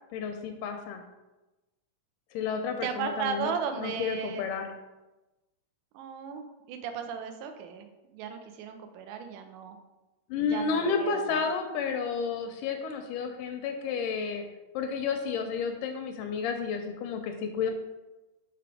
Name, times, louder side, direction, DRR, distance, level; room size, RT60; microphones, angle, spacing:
voice 1, 0.1-1.0 2.3-4.6 10.3-14.4 14.7-17.7, left 5 dB, 80° left, 5 dB, 1.9 m, -31 dB
voice 2, 2.8-4.5 5.9-7.9 8.1-9.8 10.3-11.5, right 6 dB, 80° right, 6 dB, 1.9 m, -35 dB
5.7 x 3.8 x 4.8 m, 1.1 s
omnidirectional pair, 3.9 m